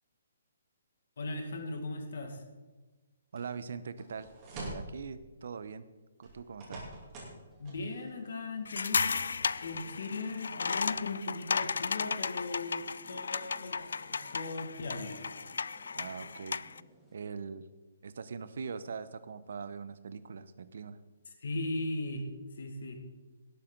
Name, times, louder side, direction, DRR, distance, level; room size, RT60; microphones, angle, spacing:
voice 1, 1.2-2.4 7.6-15.2 21.4-22.2 22.6-23.0, left 2 dB, 65° left, 4 dB, 2.0 m, -38 dB
voice 2, 3.3-5.8 6.2-6.8 15.9-16.6 17.1-17.6 18.0-21.0, right 5 dB, 55° right, 14 dB, 0.8 m, -42 dB
sound 1, 3.4-3.5 4.0-4.9 6.2-7.4 7.6-7.8, right 1 dB, 20° right, 3.0 m, -44 dB
sound 2, 7.5-17.1, equal, ahead, 1.3 m, -60 dB
sound 3, 8.7-16.8, left 5 dB, 85° left, 0.4 m, -34 dB
18.0 x 8.4 x 3.9 m, 1.2 s
hypercardioid pair, 175°, 0 cm